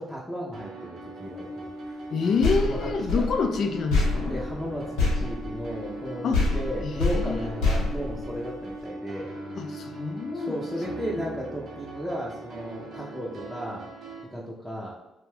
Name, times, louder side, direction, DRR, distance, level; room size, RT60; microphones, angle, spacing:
voice 1, 0.0-2.1 2.6-2.9 3.1-3.3 4.3-9.3 10.3-13.9 14.3-14.9, equal, 5° left, -5 dB, 0.6 m, -35 dB
sound 1, 0.5-14.2, right 2 dB, 60° right, 0.5 m, -42 dB
sound 2, 1.3-11.3, equal, 35° left, 1.1 m, -41 dB
voice 2, 2.1-4.3 6.2-6.4 6.8-7.4 9.5-10.6, left 4 dB, 60° left, 7 dB, 0.3 m, -27 dB
sound 3, 2.4-6.0 6.3-8.8, left 3 dB, 85° left, 0.8 m, -27 dB
2.5 x 2.2 x 3.2 m, 1.0 s
supercardioid pair, 60°, 0 cm